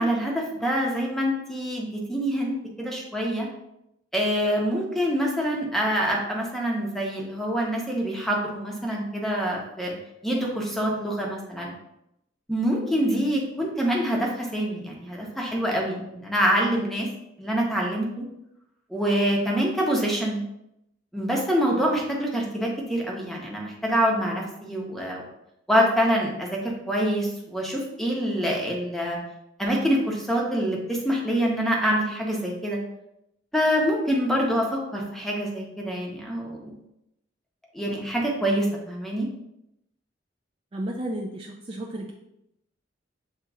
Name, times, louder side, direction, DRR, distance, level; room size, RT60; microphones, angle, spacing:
voice 1, 0.0-3.5 4.1-9.9 10.2-11.7 12.5-17.1 17.4-18.2 18.9-20.4 21.1-25.2 25.7-29.2 29.6-32.8 33.5-36.7 37.7-39.3, equal, ahead, -2 dB, 0.8 m, -25 dB
voice 2, 40.7-42.1, right 1 dB, 30° right, -1 dB, 0.4 m, -32 dB
7.6 x 2.9 x 2.4 m, 0.83 s
head